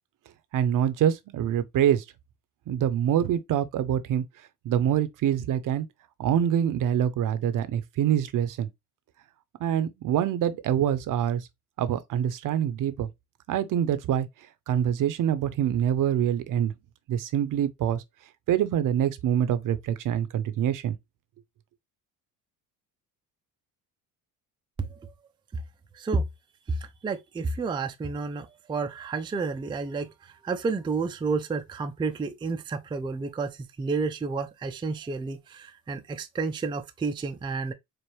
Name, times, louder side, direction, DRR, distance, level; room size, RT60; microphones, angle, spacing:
voice 1, 0.5-2.0 2.7-4.2 4.6-5.9 6.2-8.7 9.6-11.5 11.8-13.1 13.5-14.3 14.7-16.7 17.1-18.0 18.5-20.9, right 10 dB, 55° right, 0.6 m, -25 dB
voice 2, 24.8-25.1 25.9-26.2 26.7-26.8 27.0-37.7, right 4 dB, 15° right, 0.4 m, -30 dB
4.6 x 2.5 x 3.1 m
cardioid pair, 120°, 37 cm